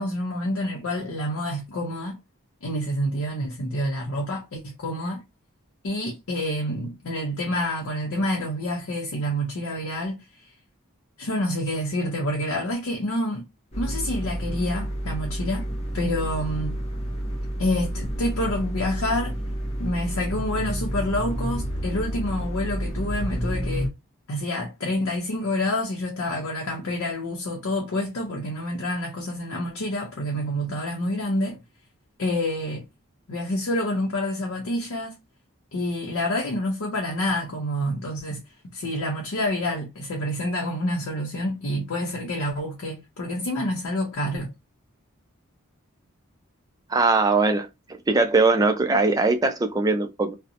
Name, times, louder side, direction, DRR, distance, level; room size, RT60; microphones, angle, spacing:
voice 1, 0.0-2.2 2.6-5.2 5.8-10.5 11.2-13.4 13.8-15.7 15.9-16.8 17.6-19.4 19.8-23.9 24.3-31.6 32.2-32.8 33.3-35.2 35.7-38.4 38.7-44.5, left 1 dB, 80° left, 0.6 m, -28 dB
sound 1, 13.7-23.9, equal, 30° left, 0.6 m, -29 dB
voice 2, 46.9-47.7 48.1-50.3, right 3 dB, 15° right, 0.3 m, -20 dB
2.7 x 2.1 x 2.5 m
head